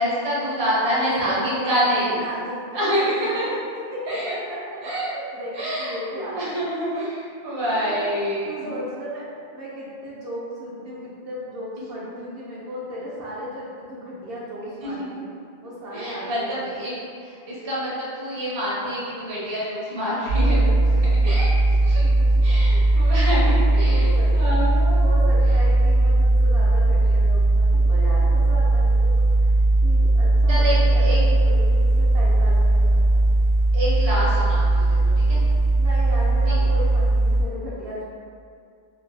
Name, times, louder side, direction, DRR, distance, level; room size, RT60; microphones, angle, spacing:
voice 1, 0.0-2.2 2.7-3.5 4.1-4.3 4.8-5.1 5.5-8.7 12.2-12.3 14.8-15.1 15.9-16.9 17.2-22.1 22.4-25.2 30.5-31.2 33.7-35.4 36.5-36.6, equal, 30° right, -8 dB, 0.6 m, -27 dB
voice 2, 0.9-3.5 3.9-4.6 5.1-6.6 7.6-8.1 8.4-15.3 15.6-16.7 22.0-22.3 22.9-29.6 29.8-33.3 35.8-38.0, equal, 70° right, -7 dB, 0.8 m, -35 dB
sound 1, 20.3-37.4, right 2 dB, 60° left, 0.8 m, -18 dB
2.5 x 2.3 x 2.5 m, 2.3 s
omnidirectional pair, 1.1 m